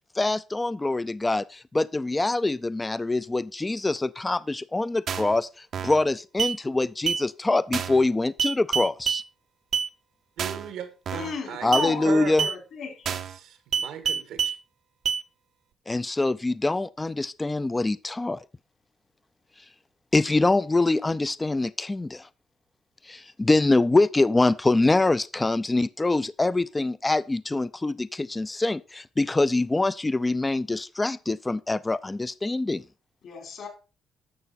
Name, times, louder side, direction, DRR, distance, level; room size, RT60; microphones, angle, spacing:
voice 1, 0.2-9.2 11.6-12.5 15.9-18.4 20.1-22.3 23.0-32.8, left 2 dB, 20° left, 0.4 m, -24 dB
sound 1, 5.1-5.4 5.7-6.0 6.4-6.6 7.1-7.2 7.7-8.0 8.4-9.2 9.7-9.9 10.4-10.7 11.1-11.4 11.7-11.9 12.4-12.6 13.1-13.4 13.7-14.6 15.1-15.2, right 7 dB, 65° right, 0.8 m, -27 dB
voice 2, 10.4-12.3 13.1-14.5, right 9 dB, 90° right, 1.7 m, -38 dB
voice 3, 11.1-13.1 33.2-33.7, left 5 dB, 70° left, 4.0 m, -34 dB
11.0 x 6.7 x 4.2 m
cardioid pair, 90°, 0 cm